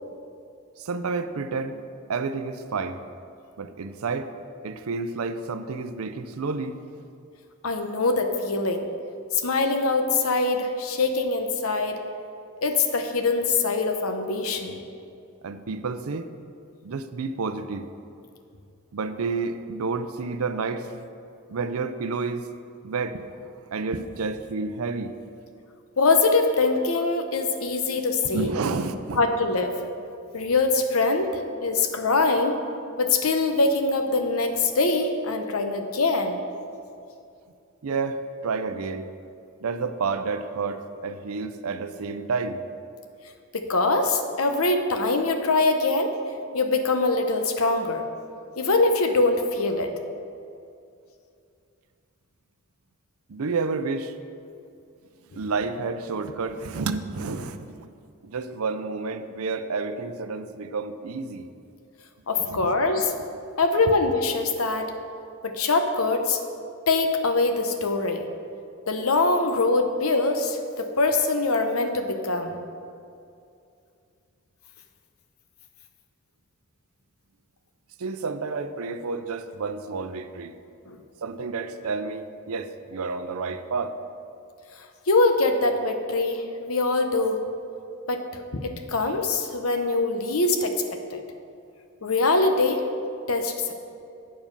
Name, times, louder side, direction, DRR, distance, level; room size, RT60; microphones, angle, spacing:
voice 1, 0.8-1.8 2.1-3.0 3.6-4.3 4.6-6.8 15.4-16.3 16.8-17.9 18.9-21.0 21.5-22.5 22.8-23.3 23.7-25.1 28.2-29.2 37.8-39.1 39.6-42.6 53.3-54.1 55.4-57.9 58.2-61.5 62.4-62.7 78.0-80.6 81.2-84.0, right 4 dB, 80° right, 10 dB, 0.5 m, -30 dB
voice 2, 7.6-8.9 9.3-12.0 12.6-14.8 26.0-28.5 29.2-29.7 30.3-32.6 33.0-36.4 43.5-46.2 46.5-48.0 48.6-49.9 62.3-63.1 63.6-64.9 65.4-66.4 66.9-68.2 68.9-72.6 80.9-81.0 85.1-87.5 88.1-91.2 92.0-92.8 93.3-93.7, left 3 dB, 80° left, 6 dB, 0.9 m, -23 dB
8.7 x 7.2 x 5.4 m, 2.5 s
head